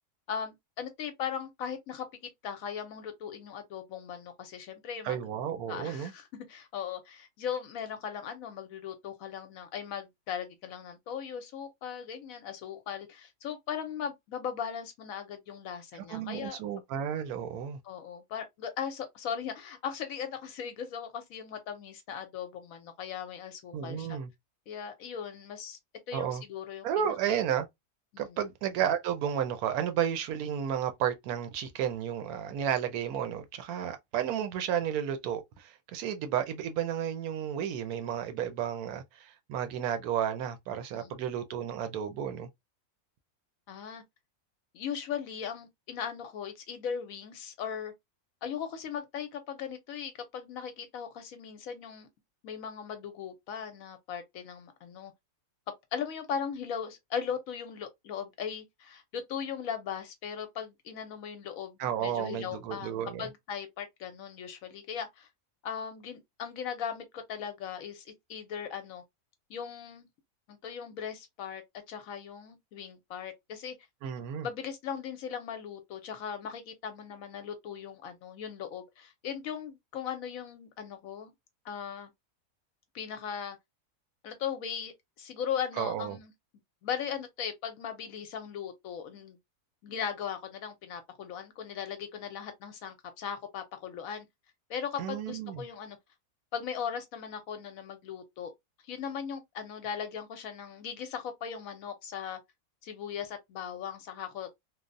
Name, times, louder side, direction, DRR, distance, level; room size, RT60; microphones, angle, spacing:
voice 1, 0.3-2.1 2.4-5.2 5.7-16.6 17.8-24.2 24.7-25.8 26.1-27.4 28.1-28.4 40.9-41.2 43.7-44.0 44.7-47.9 48.4-52.1 52.4-55.1 55.9-62.9 63.2-65.3 65.6-69.0 69.5-70.1 70.5-71.6 71.9-73.7 74.4-81.3 81.6-82.1 82.9-83.6 84.2-86.3 86.8-89.4 89.8-94.3 94.7-96.0 96.5-98.5 98.8-102.4 102.8-104.5, left 7 dB, 70° left, 0.9 m, -38 dB
voice 2, 5.0-6.1 15.9-17.8 23.7-24.3 26.1-26.4 26.8-27.7 28.2-42.5 61.8-63.3 74.0-74.5 85.8-86.2 95.0-95.7, right 9 dB, 75° right, 1.0 m, -32 dB
3.1 x 2.0 x 2.5 m
omnidirectional pair, 1.6 m